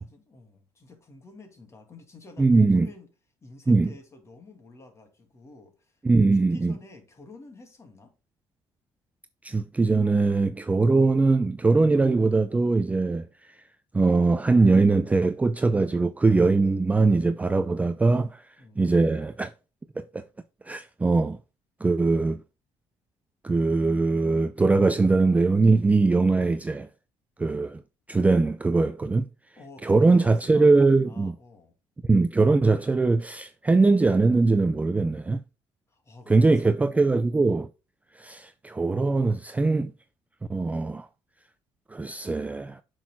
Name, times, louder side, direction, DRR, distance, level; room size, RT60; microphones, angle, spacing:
voice 1, 0.0-3.1 3.4-6.0 6.3-8.1 18.2-18.9 29.6-31.7 35.9-37.1, left 3 dB, 30° left, 2.3 m, -49 dB
voice 2, 2.4-2.9 3.7-3.9 6.0-6.8 9.4-13.2 13.9-18.4 18.8-19.5 20.0-20.3 20.7-21.4 21.8-22.4 23.4-26.9 27.4-27.8 28.1-29.3 29.8-31.3 32.1-35.4 36.3-37.7 38.2-39.9 40.5-41.1 41.9-42.8, right 3 dB, 15° right, 0.4 m, -21 dB
8.2 x 6.3 x 2.2 m
cardioid pair, 115°, 10 cm